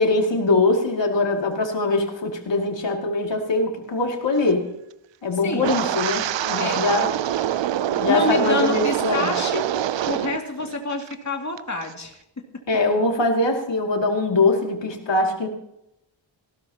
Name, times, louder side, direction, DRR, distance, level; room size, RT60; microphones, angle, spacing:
voice 1, 0.0-4.7 5.2-7.1 7.9-9.4 12.7-15.5, left 2 dB, 70° left, 2 dB, 2.5 m, -22 dB
Wind, 5.6-10.4 10.7-11.1 11.6-11.9, right 11 dB, 75° right, 0.5 m, -25 dB
voice 2, 8.1-9.7 10.1-12.4, left 3 dB, 40° left, 1 dB, 2.5 m, -28 dB
19.0 x 16.5 x 2.9 m, 0.83 s
wide cardioid pair, 115°, 45 cm